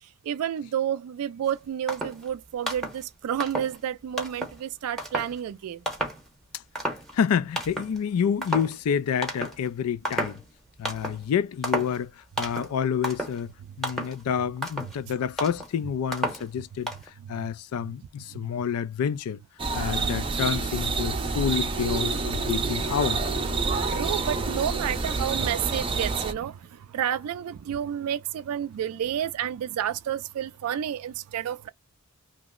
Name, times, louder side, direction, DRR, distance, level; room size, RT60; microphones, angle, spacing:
voice 1, 0.2-5.8 17.2-17.5 18.5-18.6 23.8-31.7, right 9 dB, 80° right, 0.3 m, -30 dB
sound 1, 1.5-1.6 1.9-2.3 2.6-3.0 3.4-3.8 4.2-4.6 5.0-5.4 5.9-6.3 6.5-7.3 7.6-8.0 8.4-8.8 9.2-9.7 10.0-10.4 10.8-11.2 11.6-12.0 12.4-12.8 13.0-13.4 13.8-14.2 14.6-15.0 15.4-15.7 16.1-16.5 16.9-17.1, right 1 dB, ahead, 0.8 m, -32 dB
voice 2, 7.1-10.4 10.8-12.1 12.4-13.5 13.8-16.9 17.3-19.4 19.7-23.2, left 7 dB, 85° left, 0.3 m, -28 dB
sound 2, 19.6-26.3, right 3 dB, 25° right, 0.5 m, -28 dB
2.9 x 2.0 x 3.5 m
head